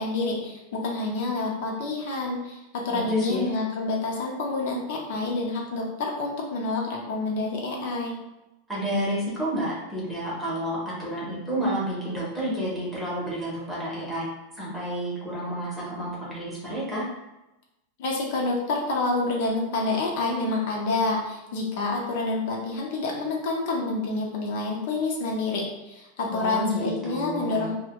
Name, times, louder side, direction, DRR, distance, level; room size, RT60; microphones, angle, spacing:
voice 1, 0.0-8.1 18.0-27.7, left 3 dB, 55° left, -1 dB, 0.6 m, -28 dB
voice 2, 2.9-3.5 8.7-14.3 14.6-17.0 26.3-27.7, equal, 5° right, -7 dB, 0.7 m, -30 dB
2.6 x 2.1 x 2.9 m, 0.97 s
supercardioid pair, 170°, 0 cm